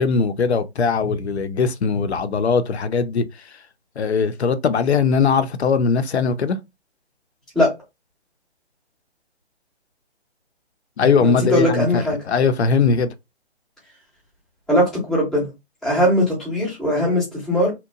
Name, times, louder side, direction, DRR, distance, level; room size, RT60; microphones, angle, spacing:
voice 1, 0.0-3.2 4.0-6.6 11.0-13.1, left 5 dB, 75° left, 0.5 m, -20 dB
voice 2, 11.2-12.2 14.7-15.5 15.8-17.7, equal, ahead, 0.4 m, -20 dB
2.9 x 2.1 x 2.6 m
figure-of-eight pair, 140°, 33 cm